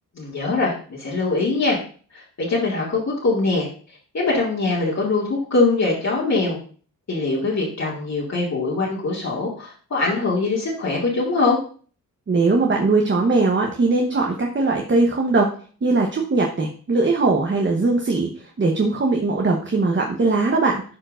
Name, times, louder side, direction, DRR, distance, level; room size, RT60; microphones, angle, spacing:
voice 1, 0.2-1.8 2.1-3.7 4.1-6.6 7.1-11.6, left 3 dB, 50° left, -6 dB, 2.3 m, -22 dB
voice 2, 12.3-15.5 15.8-18.3 18.6-20.8, right 3 dB, 35° right, 1 dB, 1.0 m, -20 dB
11.0 x 4.5 x 2.5 m, 0.42 s
cardioid pair, 90°, 36 cm